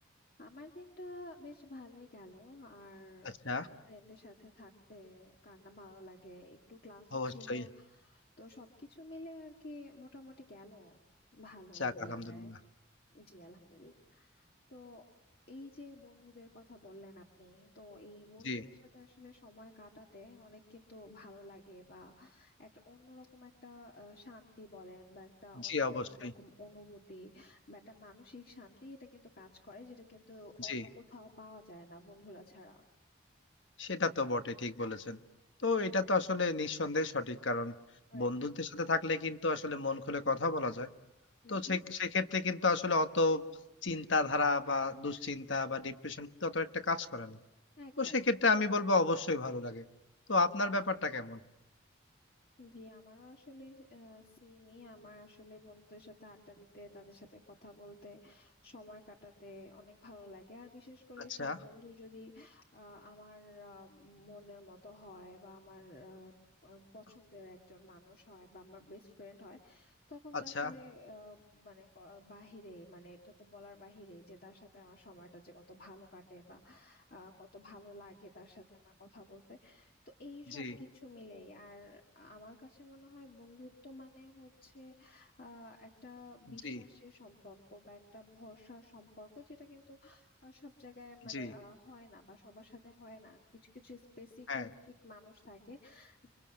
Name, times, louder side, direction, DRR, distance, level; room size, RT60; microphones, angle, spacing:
voice 1, 0.4-3.4 3.7-11.0 11.3-12.6 13.1-15.0 15.5-32.8 38.1-38.4 41.4-41.8 47.8-48.3 52.6-66.3 66.6-93.4 93.7-96.3, left 2 dB, 50° left, 1 dB, 1.9 m, -53 dB
voice 2, 7.1-7.6 11.8-12.6 18.4-18.6 25.5-26.3 30.6-30.9 33.8-35.2 35.6-37.7 38.1-40.9 41.5-43.4 43.8-47.4 48.0-49.9 50.3-51.4 61.4-61.6 70.3-70.7 80.5-80.8 86.6-86.8 91.2-91.5 94.5-94.7, left 3 dB, 75° left, 9 dB, 1.4 m, -32 dB
30.0 x 25.0 x 7.8 m, 0.90 s
head